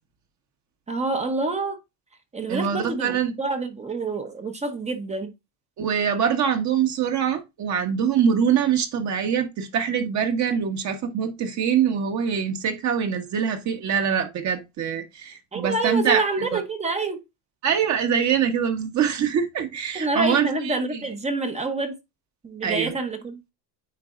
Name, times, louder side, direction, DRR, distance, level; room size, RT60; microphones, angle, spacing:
voice 1, 0.9-1.8 2.3-5.3 15.5-17.2 19.9-22.0 22.4-23.5, right 3 dB, 15° right, 0.8 m, -27 dB
voice 2, 2.5-3.3 5.8-16.6 17.6-20.8 22.6-22.9, right 7 dB, 40° right, 1.3 m, -24 dB
9.3 x 4.1 x 2.5 m
cardioid pair, 150°, 44 cm